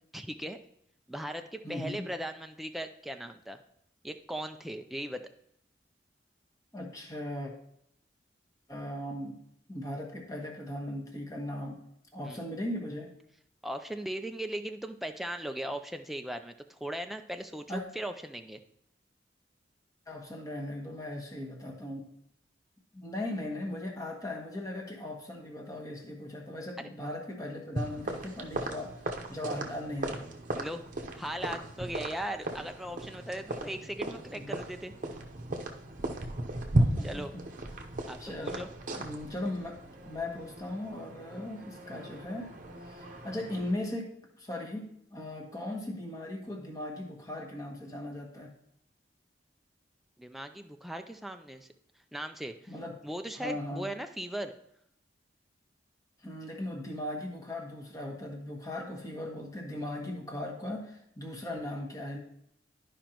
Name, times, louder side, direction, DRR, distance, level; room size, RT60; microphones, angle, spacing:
voice 1, 0.1-0.6 1.1-3.6 4.0-5.3 12.2-12.4 13.6-18.6 26.8-26.9 30.5-30.8 31.2-34.9 37.0-37.3 38.1-38.7 50.2-51.7 52.1-52.7 53.0-54.5, right 1 dB, ahead, 6 dB, 0.4 m, -38 dB
voice 2, 1.6-2.0 6.7-7.5 8.7-9.4 9.7-11.8 12.1-13.1 17.7-17.8 20.1-22.0 22.9-28.9 29.3-30.2 34.3-34.6 36.8-37.4 38.2-38.6 38.9-39.8 40.0-42.5 42.9-48.5 52.7-52.9 53.4-53.9 56.2-62.2, left 1 dB, 20° left, 0 dB, 1.4 m, -38 dB
sound 1, 27.8-43.7, right 1 dB, 45° right, 0.8 m, -36 dB
12.0 x 5.1 x 2.9 m, 0.74 s
head